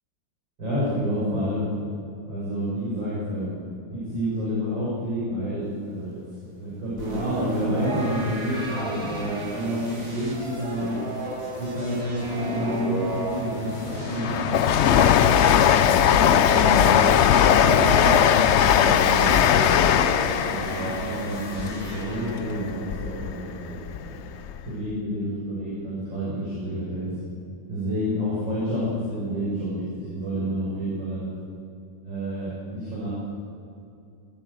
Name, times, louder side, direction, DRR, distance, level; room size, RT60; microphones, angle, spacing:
voice 1, 0.6-1.7 2.3-3.6 3.9-6.2 6.6-11.0 11.6-16.9 17.3-19.4 20.5-24.3 24.7-27.1 27.7-31.3 32.0-33.1, equal, 80° right, -9 dB, 7.2 m, -29 dB
sound 1, 7.0-22.7, right 2 dB, 45° right, 8.6 m, -33 dB
Train, 13.1-23.3 23.7-24.6 24.9-25.0, left 9 dB, 80° left, 0.6 m, -20 dB
26.0 x 15.5 x 8.1 m, 2.6 s
omnidirectional pair, 2.0 m